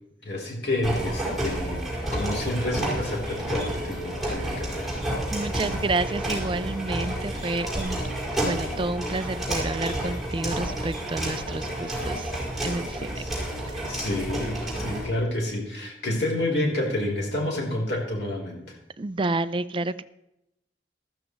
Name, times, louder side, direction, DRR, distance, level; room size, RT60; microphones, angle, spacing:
voice 1, 0.2-1.8 2.1-5.0 13.2-13.3 13.9-18.6, left 1 dB, 65° left, -1 dB, 3.6 m, -29 dB
sound 1, 0.8-15.1, right 1 dB, ahead, 5.5 m, -30 dB
voice 2, 4.3-4.6 5.3-8.0 8.4-12.3 12.6-13.2 13.7-14.0 19.0-20.0, right 2 dB, 30° right, 13 dB, 0.4 m, -30 dB
14.0 x 13.5 x 3.1 m, 0.85 s
head